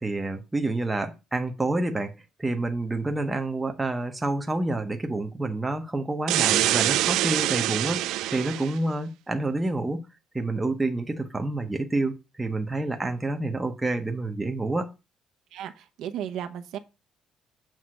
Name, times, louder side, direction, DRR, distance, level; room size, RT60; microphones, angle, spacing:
voice 1, 0.0-2.1 2.4-10.1 10.3-14.9, right 2 dB, 10° right, 0.8 m, -28 dB
sound 1, 6.3-8.8, right 15 dB, 90° right, 0.3 m, -24 dB
voice 2, 15.5-16.8, right 9 dB, 70° right, 0.9 m, -35 dB
7.6 x 3.5 x 6.3 m
cardioid pair, 175°, 0 cm